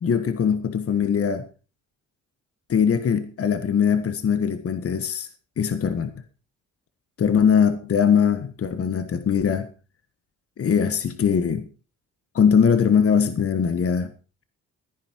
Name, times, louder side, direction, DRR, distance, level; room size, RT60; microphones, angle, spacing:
voice 1, 0.0-1.5 2.7-5.3 5.6-6.1 7.2-9.7 10.6-11.7 12.3-14.1, left 7 dB, 50° left, 1.6 m, -21 dB
15.0 x 10.5 x 4.7 m
cardioid pair, 90°, 30 cm